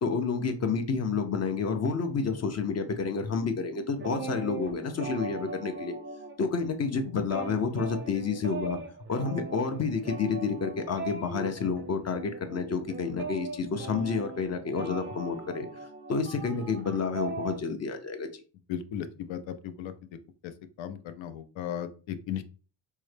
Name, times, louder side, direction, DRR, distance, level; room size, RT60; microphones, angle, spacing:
voice 1, 0.0-5.9 6.4-8.8 9.1-15.7 16.1-18.4, left 5 dB, 35° left, 6 dB, 0.5 m, -29 dB
sound 1, 3.9-6.7 7.0-17.6, right 3 dB, 25° right, 0.5 m, -40 dB
voice 2, 18.7-19.9 20.4-20.5 20.8-22.4, left 9 dB, 85° left, 10 dB, 0.6 m, -36 dB
4.5 x 2.1 x 3.2 m, 0.36 s
cardioid pair, 125°, 45 cm